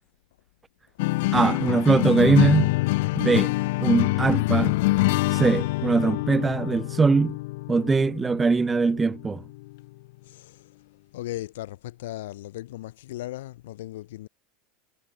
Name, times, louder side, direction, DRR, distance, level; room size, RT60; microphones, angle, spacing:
sound 1, 1.0-9.7, left 21 dB, 65° left, 0.4 m, -25 dB
voice 1, 1.3-2.7 3.2-3.5 3.8-4.7 5.3-7.3 7.7-9.4, right 4 dB, 10° right, 0.4 m, -21 dB
voice 2, 10.2-10.7 11.1-14.3, left 15 dB, 85° left, 5.5 m, -37 dB
supercardioid pair, 160°, 0 cm